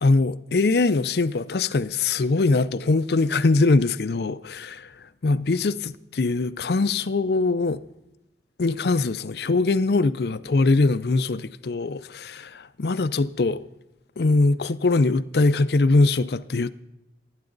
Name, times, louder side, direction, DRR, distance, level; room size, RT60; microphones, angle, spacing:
voice 1, 0.0-4.9 5.2-7.8 8.6-13.7 14.2-16.7, left 3 dB, 60° left, 0.5 m, -22 dB
28.5 x 9.7 x 3.9 m
head